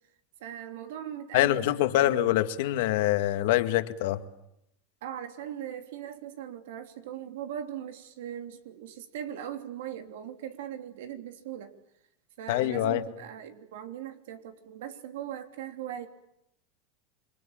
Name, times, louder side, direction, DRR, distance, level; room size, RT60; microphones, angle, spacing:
voice 1, 0.4-2.2 5.0-11.7 12.4-16.1, right 10 dB, 80° right, 7 dB, 3.2 m, -40 dB
voice 2, 1.3-4.2 12.5-13.0, left 14 dB, 70° left, 9 dB, 2.0 m, -25 dB
28.0 x 23.0 x 8.8 m, 0.81 s
supercardioid pair, 120°, 0 cm